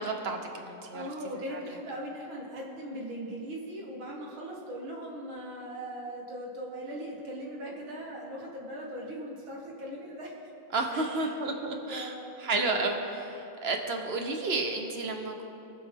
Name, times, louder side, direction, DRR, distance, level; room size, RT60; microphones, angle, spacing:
voice 1, 0.0-1.0 10.7-15.4, right 3 dB, 45° right, 4 dB, 0.8 m, -31 dB
voice 2, 0.9-10.5 10.9-12.4, equal, 90° right, -4 dB, 2.5 m, -40 dB
22.5 x 7.5 x 3.5 m, 2.9 s
omnidirectional pair, 2.1 m